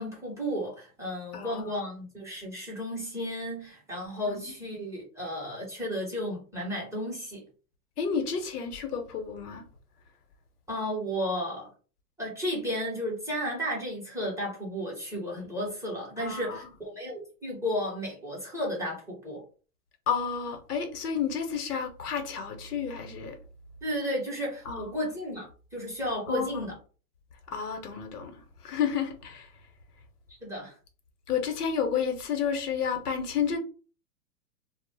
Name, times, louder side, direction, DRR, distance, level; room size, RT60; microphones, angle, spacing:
voice 1, 0.0-7.4 10.7-11.7 12.2-19.4 23.8-25.5 25.7-26.7 30.4-30.7, equal, 5° right, 0.7 m, -33 dB
voice 2, 1.3-1.8 4.3-4.5 8.0-9.7 16.2-16.6 20.1-23.4 24.6-25.0 26.3-26.6 27.5-29.5 31.3-33.6, left 7 dB, 75° left, 0.9 m, -31 dB
2.0 x 2.0 x 3.2 m
hypercardioid pair, 120°, 47 cm